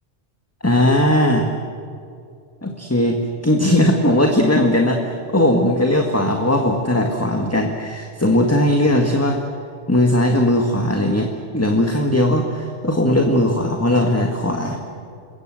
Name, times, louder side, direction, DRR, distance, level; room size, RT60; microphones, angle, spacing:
voice 1, 0.6-1.5 2.6-3.2 3.4-9.4 9.9-11.3 11.5-14.8, left 1 dB, 10° left, 3 dB, 1.9 m, -18 dB
28.0 x 22.5 x 7.8 m, 2.5 s
omnidirectional pair, 1.2 m